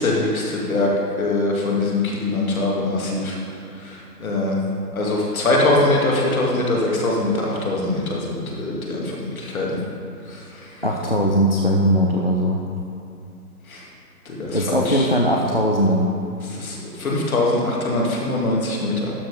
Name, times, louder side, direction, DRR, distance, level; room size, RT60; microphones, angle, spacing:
voice 1, 0.0-3.4 3.8-4.6 4.9-9.7 10.3-10.4 13.7-13.8 14.3-15.1 16.5-19.1, left 2 dB, 55° left, -3 dB, 2.2 m, -22 dB
voice 2, 10.8-12.6 14.5-16.1, equal, 40° left, 0 dB, 0.4 m, -19 dB
12.0 x 4.7 x 5.0 m, 2.4 s
hypercardioid pair, 160°, 49 cm